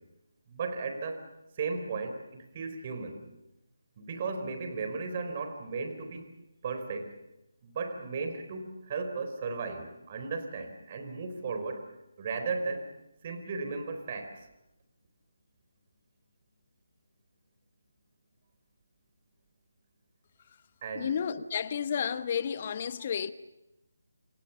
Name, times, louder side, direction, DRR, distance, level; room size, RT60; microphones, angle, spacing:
voice 1, 0.5-1.3 1.5-3.2 4.0-6.3 6.6-7.1 7.6-11.9 12.2-12.9 13.2-14.4 20.8-21.1, right 4 dB, 35° right, 4.1 m, -35 dB
voice 2, 20.9-23.3, left 7 dB, 35° left, 1.2 m, -31 dB
29.0 x 27.0 x 7.0 m
figure-of-eight pair, 150°, 0 cm